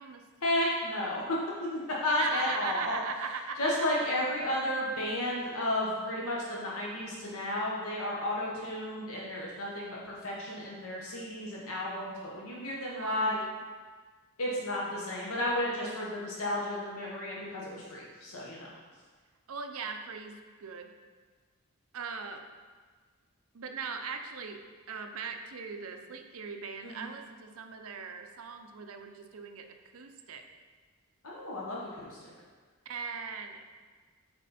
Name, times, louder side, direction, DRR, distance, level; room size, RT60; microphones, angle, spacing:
voice 1, 0.4-2.9 3.6-13.4 14.4-18.7 26.8-27.1 31.2-32.3, left 1 dB, 70° left, -4 dB, 1.2 m, -33 dB
voice 2, 2.2-3.6 12.9-13.5 19.5-20.9 21.9-22.4 23.5-24.6 24.9-29.7 29.9-30.4 32.9-33.6, right 5 dB, 65° right, 6 dB, 0.6 m, -39 dB
7.9 x 4.2 x 4.2 m, 1.5 s
head